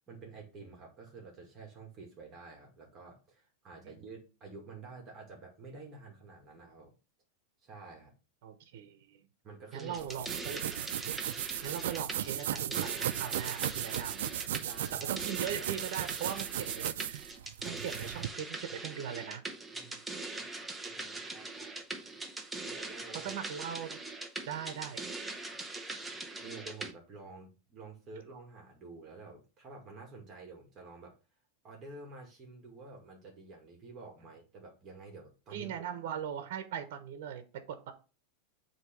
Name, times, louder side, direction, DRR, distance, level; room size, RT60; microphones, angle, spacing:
voice 1, 0.1-7.0 7.6-8.1 9.4-10.1 14.6-15.1 19.7-19.9 20.8-21.9 22.7-23.3 26.4-31.1 31.6-35.8, right 3 dB, 25° right, 0 dB, 2.2 m, -50 dB
voice 2, 8.4-9.2 9.7-10.8 11.6-14.6 14.9-17.3 17.6-19.4 19.8-20.0 23.1-24.0 24.5-25.0 35.5-37.9, right 9 dB, 60° right, 8 dB, 1.1 m, -40 dB
sound 1, 9.7-26.9, right 2 dB, 5° right, 0.8 m, -42 dB
sound 2, 10.0-18.3, right 11 dB, 80° right, 0.6 m, -36 dB
8.0 x 3.0 x 6.0 m, 0.33 s
supercardioid pair, 160°, 0 cm